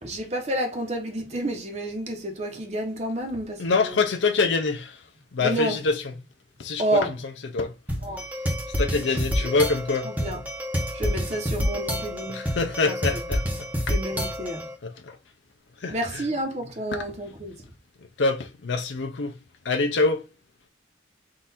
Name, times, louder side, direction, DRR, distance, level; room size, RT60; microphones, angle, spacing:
voice 1, 0.0-4.0 5.4-5.8 6.8-7.1 8.0-8.2 9.0-9.5 10.0-10.4 10.9-12.4 12.9-13.2 13.9-14.7 15.9-17.5, right 1 dB, 40° right, 1.0 m, -30 dB
voice 2, 3.6-5.0 5.3-6.0 6.6-7.1 7.5-7.7 8.8-10.1 12.3-13.4 14.8-15.2 15.8-16.2 18.2-19.3 19.6-20.2, left 3 dB, 85° left, 0.6 m, -25 dB
sound 1, 7.9-14.7, equal, 10° right, 0.9 m, -28 dB
3.8 x 2.6 x 4.1 m
head